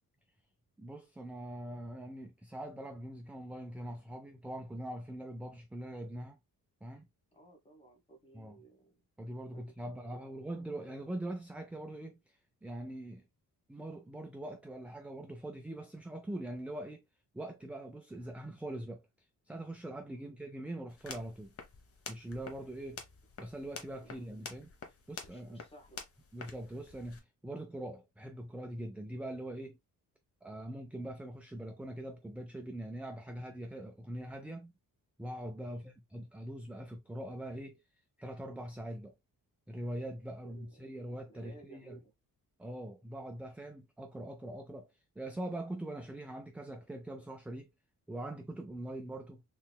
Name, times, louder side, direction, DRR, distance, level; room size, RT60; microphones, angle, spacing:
voice 1, 0.8-6.4 6.8-7.1 8.3-8.6 9.2-13.2 13.7-17.0 17.3-19.0 19.5-21.5 22.1-23.0 23.4-24.7 25.1-25.6 26.3-29.8 30.4-34.7 35.2-37.8 38.2-39.1 39.7-42.0 42.6-44.9 45.2-47.7 48.1-49.4, right 1 dB, 5° right, 0.3 m, -42 dB
voice 2, 7.3-8.9 9.5-10.5 20.1-20.3 24.0-24.3 25.2-26.1 35.6-35.8 40.4-42.1, right 3 dB, 15° left, 1.2 m, -58 dB
sound 1, 20.9-27.2, left 4 dB, 40° left, 0.9 m, -49 dB
3.9 x 3.2 x 2.2 m
wide cardioid pair, 135°, 34 cm